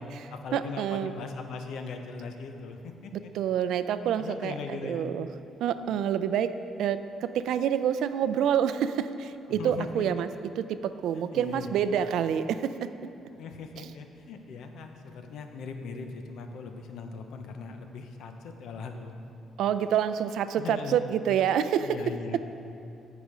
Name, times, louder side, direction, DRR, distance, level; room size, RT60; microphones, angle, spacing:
voice 1, 0.0-3.3 4.2-5.1 9.6-10.0 11.1-11.8 13.4-19.1 20.6-21.0 21.8-22.4, left 4 dB, 75° left, 5 dB, 0.8 m, -39 dB
voice 2, 0.5-1.1 3.1-5.3 5.6-10.3 10.6-12.9 13.8-13.9 19.6-22.0, right 9 dB, 80° right, 12 dB, 0.4 m, -27 dB
14.5 x 5.0 x 4.9 m, 2.7 s
cardioid pair, 165°, 0 cm